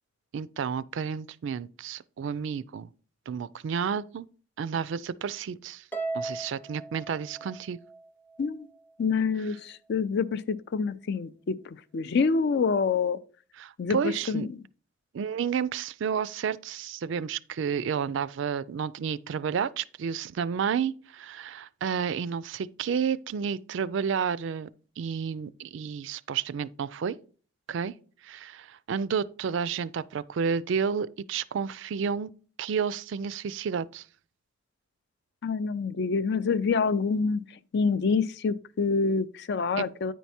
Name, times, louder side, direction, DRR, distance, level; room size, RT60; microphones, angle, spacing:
voice 1, 0.3-2.9 3.3-4.3 4.6-5.8 6.1-7.8 13.6-14.5 15.1-24.7 25.0-27.2 27.7-27.9 28.2-32.3 32.6-34.0 39.8-39.9, right 6 dB, 65° right, 0.3 m, -31 dB
Harp, 5.9-8.4, right 3 dB, 10° left, 0.6 m, -37 dB
voice 2, 9.0-13.2 13.8-14.6 35.4-40.1, left 5 dB, 55° left, 0.4 m, -27 dB
9.2 x 4.6 x 4.2 m
head